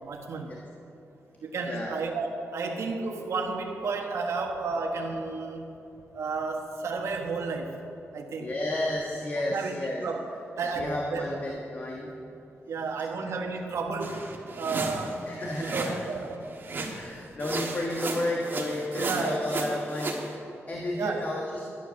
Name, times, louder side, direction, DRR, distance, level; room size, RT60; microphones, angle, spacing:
voice 1, 0.0-0.5 1.4-5.7 6.1-7.8 8.1-8.5 9.5-9.8 10.0-10.2 10.6-11.3 12.7-14.3 14.6-15.2 15.6-16.4 17.6-17.7 18.9-19.5 20.9-21.4, right 4 dB, 75° right, 2 dB, 1.4 m, -32 dB
voice 2, 1.7-2.0 8.4-10.0 10.8-12.1 15.3-16.0 16.7-21.7, left 1 dB, 35° left, -2 dB, 1.4 m, -32 dB
sound 1, 14.0-16.1 16.6-17.1 17.4-20.2, right 3 dB, 45° right, 1.5 m, -34 dB
12.5 x 10.0 x 6.4 m, 2.7 s
wide cardioid pair, 130°, 5 cm